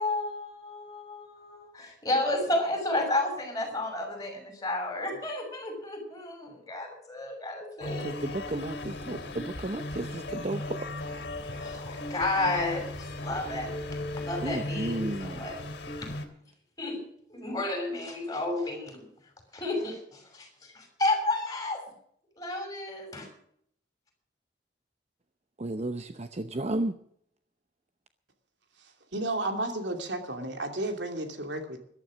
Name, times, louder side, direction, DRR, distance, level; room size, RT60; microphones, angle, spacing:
voice 1, 0.0-8.1 11.6-13.7 14.2-15.6 16.8-17.0 17.3-19.1 19.5-21.8 22.4-23.3, left 2 dB, 20° left, 6.3 m, -32 dB
sound 1, 7.8-16.2, left 2 dB, 65° left, 2.7 m, -37 dB
voice 2, 8.0-10.9 14.4-15.5 25.6-26.9, right 1 dB, 40° right, 0.8 m, -33 dB
voice 3, 29.1-31.8, right 2 dB, 80° right, 2.8 m, -32 dB
14.0 x 12.5 x 6.3 m
head